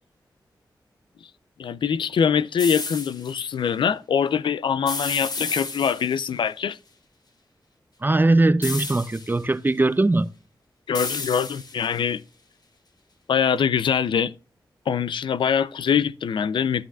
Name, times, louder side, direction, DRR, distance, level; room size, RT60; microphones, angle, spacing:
voice 1, 1.6-6.8 10.9-12.2 13.3-14.3 14.9-16.8, left 7 dB, 85° left, 0.4 m, -23 dB
sound 1, 2.6-3.3 4.9-6.3 8.6-9.4 10.9-12.0, left 3 dB, 55° left, 2.0 m, -32 dB
voice 2, 8.0-10.3, right 2 dB, 25° right, 0.6 m, -20 dB
11.5 x 8.8 x 2.3 m
cardioid pair, 50°, 8 cm